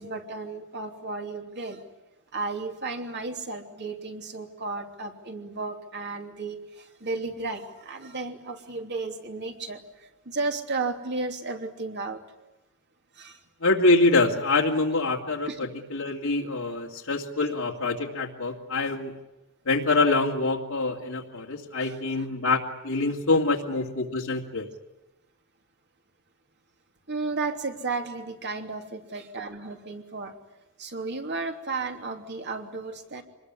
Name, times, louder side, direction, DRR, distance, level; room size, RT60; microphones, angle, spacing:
voice 1, 0.0-1.8 2.3-12.2 13.1-13.4 15.5-15.7 21.8-22.2 27.1-30.3 30.8-33.2, right 3 dB, 55° right, 4 dB, 3.1 m, -34 dB
voice 2, 13.6-15.5 15.9-19.1 19.7-24.7, left 3 dB, 85° left, -2 dB, 2.5 m, -25 dB
26.5 x 21.0 x 9.9 m, 0.99 s
head